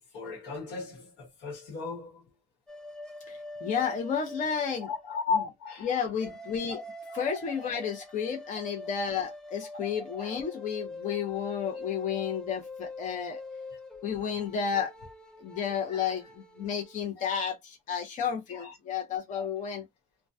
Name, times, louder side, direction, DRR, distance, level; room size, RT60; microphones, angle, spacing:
voice 1, 0.1-2.2 4.8-5.9 6.7-6.8 7.1-7.3 7.6-7.8 10.2-10.4 15.9-16.2 17.2-17.3 18.5-18.7 19.4-19.5, left 4 dB, 80° left, 1.2 m, -35 dB
sound 1, 2.7-5.2 6.2-17.0, left 2 dB, 5° left, 0.5 m, -44 dB
voice 2, 3.3-4.9 5.8-6.8 7.1-13.4 14.0-14.9 15.4-19.9, left 7 dB, 50° left, 0.7 m, -32 dB
2.2 x 2.2 x 2.6 m
cardioid pair, 110°, 17 cm